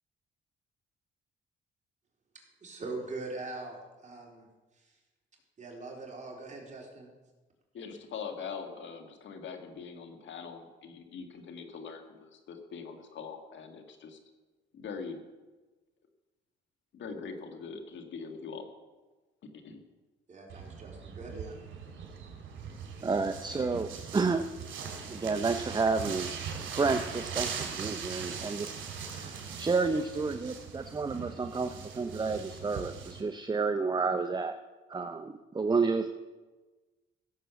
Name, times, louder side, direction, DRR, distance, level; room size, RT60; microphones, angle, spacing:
voice 1, 2.6-4.5 4.8-4.9 5.6-7.1 20.3-21.6, right 3 dB, 35° right, -1 dB, 4.1 m, -42 dB
voice 2, 7.7-14.2 14.7-15.2 16.9-18.7 19.6-19.8, left 5 dB, 70° left, 5 dB, 2.0 m, -42 dB
sound 1, 20.5-33.2, right 6 dB, 75° right, 3.1 m, -40 dB
voice 3, 23.0-24.5 25.0-26.3 26.8-34.6 34.9-36.1, right 4 dB, 20° right, 8 dB, 0.7 m, -30 dB
16.0 x 7.6 x 6.9 m, 1.2 s
cardioid pair, 90°, 20 cm